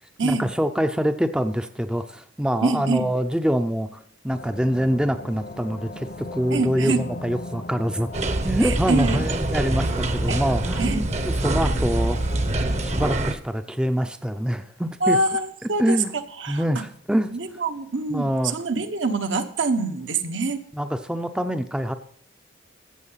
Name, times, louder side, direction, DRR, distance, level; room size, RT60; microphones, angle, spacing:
voice 1, 0.2-4.0 4.2-8.1 8.4-12.2 12.6-15.2 15.8-16.1 16.5-17.3 18.1-18.5 20.7-21.9, equal, 5° right, 8 dB, 0.5 m, -25 dB
voice 2, 2.6-3.1 6.5-7.0 8.6-9.3 10.3-10.4 10.8-11.0 15.0-16.0 16.4-16.7 17.3-20.6, right 3 dB, 75° right, 6 dB, 1.2 m, -25 dB
sound 1, 4.3-13.2, left 2 dB, 50° left, 0.8 m, -38 dB
sound 2, 8.1-13.3, right 2 dB, 35° right, 0.8 m, -25 dB
15.0 x 7.9 x 5.7 m, 0.62 s
head